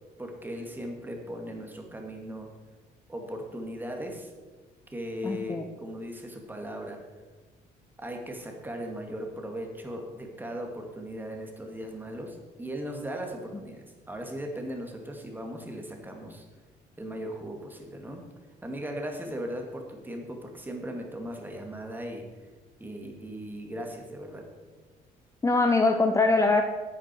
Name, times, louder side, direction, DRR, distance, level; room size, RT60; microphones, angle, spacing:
voice 1, 0.2-2.5 3.1-4.3 4.9-7.0 8.0-16.5 17.0-18.2 18.6-22.2 22.8-24.4, equal, 10° right, 2 dB, 2.1 m, -38 dB
voice 2, 5.2-5.6 25.4-26.6, left 3 dB, 15° left, 5 dB, 0.8 m, -22 dB
11.0 x 8.7 x 4.5 m, 1.3 s
cardioid pair, 110°, 17 cm